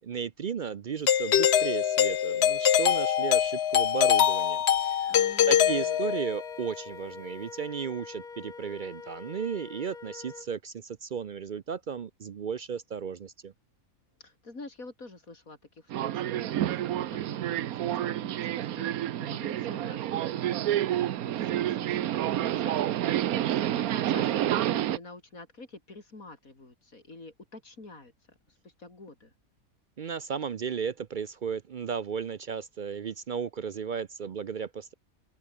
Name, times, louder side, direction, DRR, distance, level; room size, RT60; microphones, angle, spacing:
voice 1, 0.0-5.1 5.5-13.5 30.0-34.9, right 6 dB, 55° right, 0.5 m, -35 dB
Doorbell, 1.1-6.5, left 10 dB, 55° left, 0.9 m, -24 dB
voice 2, 5.1-6.0 14.2-22.8 23.4-29.3, left 2 dB, 75° left, 5.1 m, -48 dB
Wind instrument woodwind instrument, 5.6-10.5, left 4 dB, 35° left, 1.5 m, -44 dB
Subway metro underground, 15.9-25.0, right 12 dB, 90° right, 1.2 m, -29 dB
open air
omnidirectional pair, 1.5 m